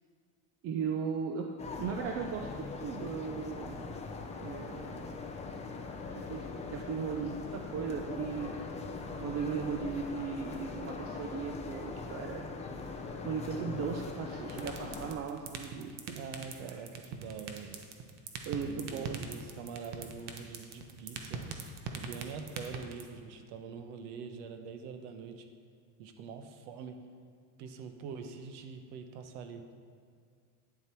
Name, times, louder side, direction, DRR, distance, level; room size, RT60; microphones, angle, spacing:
voice 1, 0.6-1.5 1.8-4.0 4.4-5.2 6.1-8.5 9.2-12.5 13.2-15.9 16.7-16.8 18.5-19.2, right 6 dB, 35° right, 3 dB, 0.5 m, -37 dB
sound 1, 1.6-15.1, left 4 dB, 15° left, 0.6 m, -41 dB
sound 2, 14.5-23.0, right 8 dB, 65° right, 1.2 m, -39 dB
voice 2, 16.1-17.8 18.6-21.4 22.0-25.5 26.0-27.0 27.6-29.7, right 5 dB, 90° right, 6 dB, 1.1 m, -44 dB
10.5 x 7.2 x 4.5 m, 2.1 s
cardioid pair, 155°, 44 cm